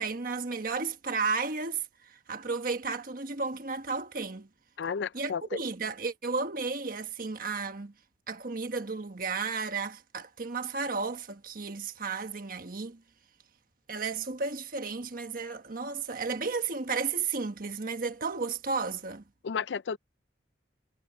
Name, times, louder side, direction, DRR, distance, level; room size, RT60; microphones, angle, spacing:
voice 1, 0.0-4.5 5.1-7.9 8.3-13.0 13.9-19.2, right 4 dB, 55° right, 1.3 m, -33 dB
voice 2, 4.8-5.4 19.4-20.0, left 6 dB, 85° left, 0.5 m, -32 dB
head